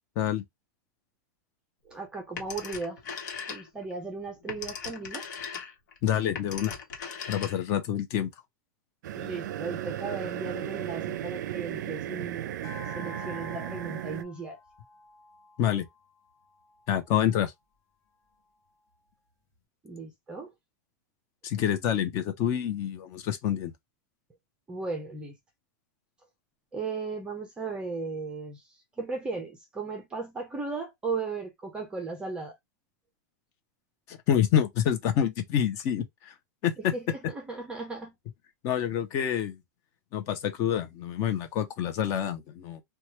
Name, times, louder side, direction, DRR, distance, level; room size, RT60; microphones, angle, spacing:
voice 1, 1.9-3.0 3.5-5.3 9.2-12.5 12.9-14.6 19.8-20.5 24.7-25.3 26.7-28.6 29.0-32.6 36.9-38.1, right 4 dB, 10° right, 0.5 m, -36 dB
Telephone, 2.4-3.9 4.3-7.9, left 6 dB, 80° left, 1.1 m, -39 dB
voice 2, 6.0-6.7 7.3-8.3 15.6-15.9 16.9-17.5 21.4-23.7 34.1-36.3 36.6-36.9 38.6-39.6 40.1-42.8, left 9 dB, 30° left, 0.6 m, -27 dB
sound 1, 9.0-14.2, right 12 dB, 85° right, 0.4 m, -35 dB
sound 2, 12.6-17.2, left 5 dB, 50° left, 1.4 m, -49 dB
3.0 x 2.3 x 2.9 m
supercardioid pair, 170°, 9 cm